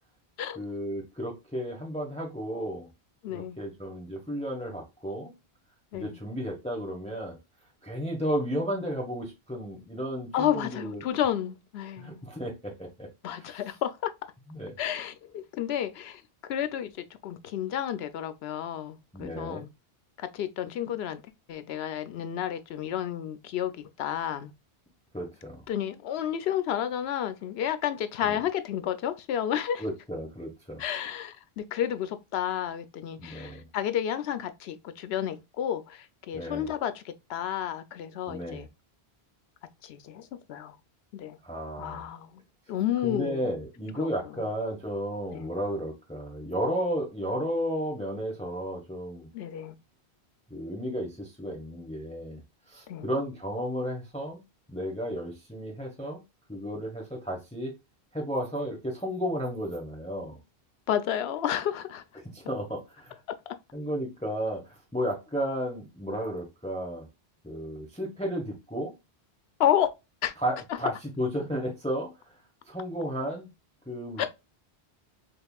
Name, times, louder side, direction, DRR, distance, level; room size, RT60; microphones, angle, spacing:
voice 1, 0.5-2.9 3.3-5.3 5.9-7.4 7.8-11.0 12.0-13.6 14.5-14.8 19.1-19.6 25.1-25.6 28.2-28.4 29.8-30.8 33.2-33.7 36.3-36.7 38.3-38.6 41.4-42.0 43.0-49.3 50.5-52.4 52.7-54.4 54.7-56.2 56.5-57.7 58.1-60.4 62.2-63.2 63.7-67.1 67.4-68.9 70.4-72.3 72.6-73.5 73.9-74.3, equal, 5° left, 0.9 m, -33 dB
voice 2, 3.2-3.6 5.9-6.2 10.3-12.3 13.2-14.1 14.8-16.2 16.5-16.9 17.2-19.7 20.2-21.2 21.5-24.5 25.7-29.8 30.8-38.7 39.8-40.7 41.1-41.4 41.8-42.3 42.7-43.4 44.0-44.1 45.3-45.5 49.3-49.8 52.9-53.1 60.9-62.0 69.6-69.9 70.2-70.3 74.2-74.3, left 10 dB, 75° left, 0.8 m, -31 dB
5.3 x 2.4 x 2.3 m
omnidirectional pair, 1.1 m